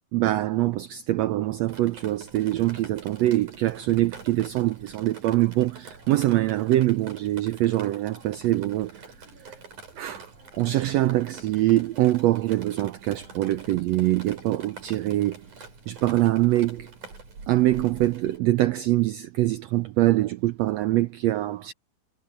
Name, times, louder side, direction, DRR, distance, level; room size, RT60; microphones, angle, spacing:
voice 1, 0.1-9.1 10.0-10.3 10.6-16.9 17.5-21.7, right 16 dB, 90° right, 1.5 m, -24 dB
Drip, 1.7-18.4, right 4 dB, 70° right, 7.9 m, -46 dB
omnidirectional pair, 3.7 m